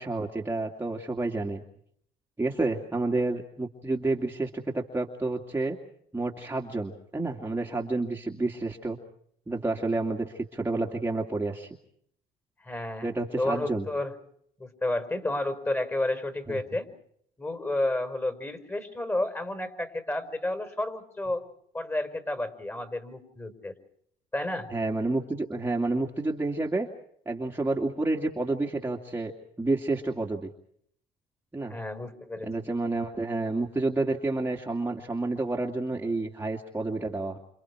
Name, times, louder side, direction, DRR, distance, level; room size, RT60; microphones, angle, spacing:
voice 1, 0.0-1.6 2.4-5.8 6.1-9.0 9.5-11.7 13.0-13.9 16.5-16.6 24.7-26.9 27.3-29.3 29.6-30.5 31.5-31.7 32.4-37.4, right 2 dB, 15° right, 0 dB, 2.5 m, -29 dB
voice 2, 12.6-13.1 13.4-14.1 14.6-16.9 17.4-21.4 21.7-23.7 24.3-24.7 31.7-32.5, left 1 dB, 15° left, 9 dB, 5.3 m, -31 dB
29.0 x 28.0 x 4.8 m, 0.68 s
cardioid pair, 110°, 17 cm